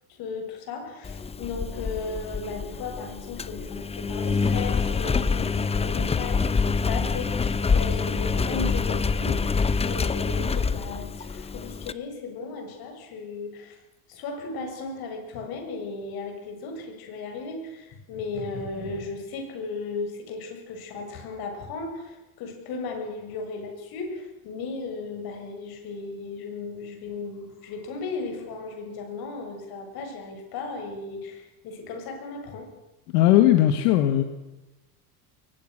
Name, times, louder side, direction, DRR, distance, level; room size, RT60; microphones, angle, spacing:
voice 1, 0.1-13.8 14.1-32.8, left 4 dB, 55° left, 4 dB, 7.3 m, -36 dB
Engine, 1.0-11.9, left 5 dB, 15° left, 0.8 m, -26 dB
voice 2, 33.1-34.2, left 13 dB, 85° left, 8 dB, 1.9 m, -18 dB
22.5 x 19.5 x 6.7 m, 1.0 s
supercardioid pair, 130°, 44 cm